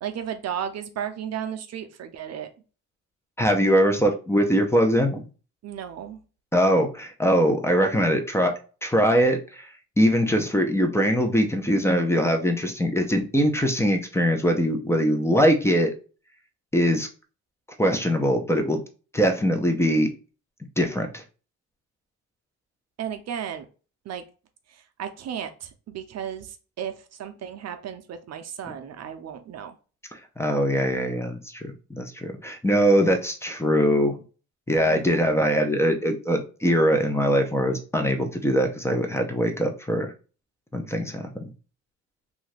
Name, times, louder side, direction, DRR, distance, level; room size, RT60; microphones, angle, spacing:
voice 1, 0.0-2.5 5.6-6.2 23.0-23.7 24.1-24.2 24.7-26.9 27.2-29.8 34.8-35.2, right 9 dB, 60° right, 8 dB, 0.6 m, -34 dB
voice 2, 3.4-5.2 6.5-8.5 8.8-9.7 10.0-15.9 16.7-17.1 17.8-18.8 19.1-20.1 20.8-21.2 30.1-34.2 34.7-40.1 40.7-41.4, equal, 10° left, 4 dB, 0.6 m, -22 dB
2.7 x 2.4 x 3.2 m, 0.35 s
cardioid pair, 90°, 30 cm